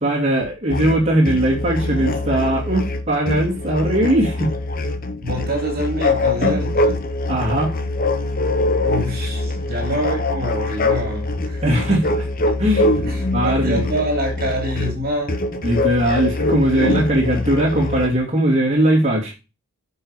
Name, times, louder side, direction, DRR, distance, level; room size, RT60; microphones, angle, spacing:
voice 1, 0.0-4.5 6.4-6.7 7.3-7.7 11.6-12.3 12.6-13.1 13.3-13.8 15.6-19.3, right 1 dB, 25° right, 2.5 m, -19 dB
sound 1, 0.7-18.1, left 2 dB, 40° left, 1.0 m, -23 dB
voice 2, 5.2-6.9 8.8-11.8 13.0-15.3, right 1 dB, 45° right, 2.8 m, -26 dB
10.0 x 5.8 x 4.9 m
head